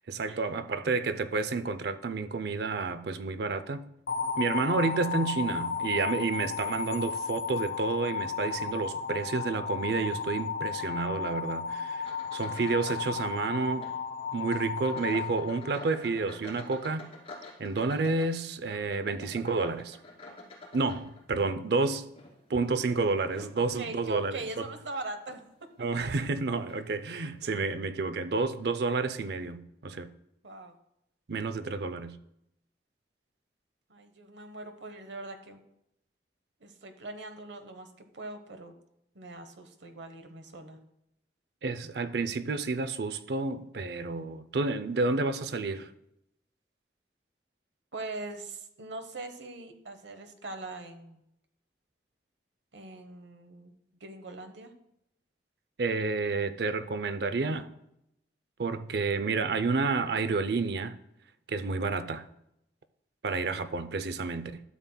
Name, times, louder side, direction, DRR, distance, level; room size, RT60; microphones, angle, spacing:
voice 1, 0.1-3.8 4.4-13.9 14.3-17.1 17.6-20.0 20.7-22.1 22.5-24.4 25.8-30.1 31.3-32.2 41.6-45.9 55.8-57.7 58.6-61.0 61.5-62.2 63.2-64.6, right 3 dB, 65° right, 0.5 m, -30 dB
sound 1, 4.1-16.2, left 6 dB, 60° left, 0.4 m, -34 dB
sound 2, 12.0-13.1 13.4-14.0 14.4-21.5 22.0-23.9 24.5-24.7 25.3-25.4 26.3-26.4 26.7-26.8, left 2 dB, 30° left, 2.6 m, -49 dB
voice 2, 23.6-25.7 30.4-30.7 33.9-35.6 36.6-38.7 39.1-40.8 47.9-51.2 52.7-53.7 54.0-54.7 56.3-56.4 57.5-57.7, right 2 dB, 85° right, 1.0 m, -42 dB
12.5 x 7.2 x 2.3 m
head